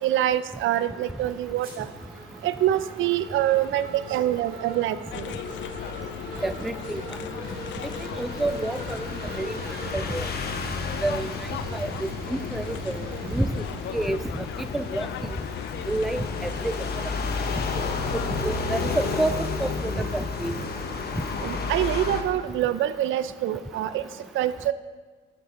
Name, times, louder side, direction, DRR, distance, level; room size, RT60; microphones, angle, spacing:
voice 1, 0.0-1.9 2.4-5.3 21.4-24.0 24.3-24.7, right 12 dB, 80° right, 14 dB, 0.5 m, -25 dB
sound 1, 0.6-15.2, right 1 dB, 45° right, 2.1 m, -41 dB
sound 2, 5.1-19.3, left 11 dB, 70° left, 0.4 m, -38 dB
voice 2, 6.4-7.0 8.2-9.1 9.4-9.6 9.9-10.3 11.0-11.3 11.7-13.0 13.3-13.6 13.9-14.2 14.7-15.1 15.9-16.7 17.8-17.9 18.4-19.3 19.6-20.5, right 2 dB, ahead, 12 dB, 0.3 m, -28 dB
sound 3, 7.4-22.2, left 4 dB, 55° left, 1.0 m, -32 dB
7.5 x 7.1 x 5.4 m, 1.4 s
cardioid pair, 90°, 20 cm